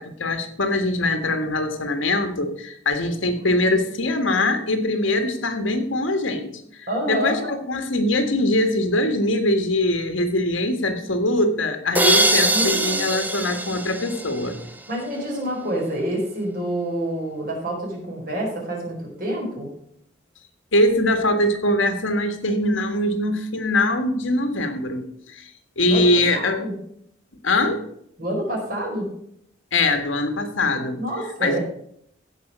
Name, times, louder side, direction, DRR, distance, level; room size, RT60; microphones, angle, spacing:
voice 1, 0.0-6.5 7.1-14.6 20.7-26.7 27.4-27.8 29.7-31.0 31.4-31.6, left 1 dB, 90° left, 7 dB, 1.6 m, -22 dB
voice 2, 6.9-7.5 12.5-13.1 14.9-19.7 25.9-26.7 28.2-29.1 31.0-31.6, right 1 dB, 45° right, -2 dB, 4.6 m, -27 dB
sound 1, 11.9-14.8, right 1 dB, 10° right, 0.6 m, -22 dB
15.5 x 5.4 x 6.2 m, 0.71 s
head